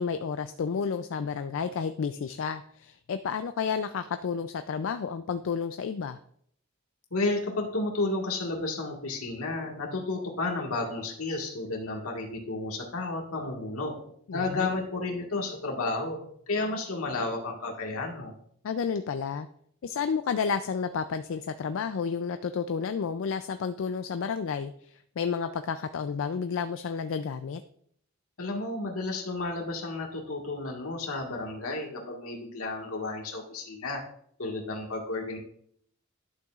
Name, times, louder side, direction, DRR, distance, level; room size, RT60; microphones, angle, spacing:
voice 1, 0.0-6.2 14.3-14.8 18.6-19.5 19.8-27.6, left 6 dB, 60° left, 10 dB, 0.4 m, -31 dB
voice 2, 7.1-18.3 28.4-34.0 34.4-35.4, left 2 dB, 80° left, 0 dB, 1.7 m, -32 dB
11.5 x 6.6 x 2.4 m, 0.65 s
head